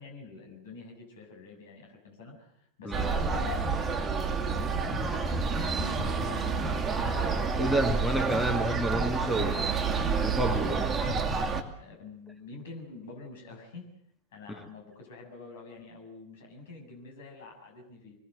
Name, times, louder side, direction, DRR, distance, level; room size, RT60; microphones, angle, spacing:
voice 1, 0.0-5.1 5.5-6.8 9.3-10.4 11.8-13.9 14.3-18.1, left 3 dB, 60° left, 7.3 m, -47 dB
sound 1, 2.9-11.6, right 4 dB, 20° right, 2.5 m, -29 dB
voice 2, 7.6-9.6 10.2-11.0, right 1 dB, ahead, 2.2 m, -29 dB
25.5 x 21.0 x 7.9 m
figure-of-eight pair, 90°, 0 cm